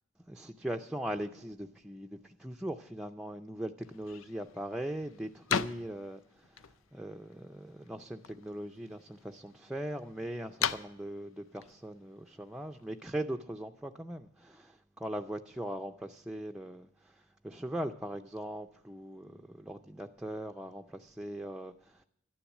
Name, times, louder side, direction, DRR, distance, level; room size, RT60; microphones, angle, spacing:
voice 1, 0.3-6.2 6.5-6.6 6.9-16.9 17.4-22.0, right 1 dB, 5° right, 0.4 m, -40 dB
sound 1, 3.8-13.0, left 7 dB, 75° left, 0.6 m, -41 dB
12.0 x 10.0 x 7.2 m
head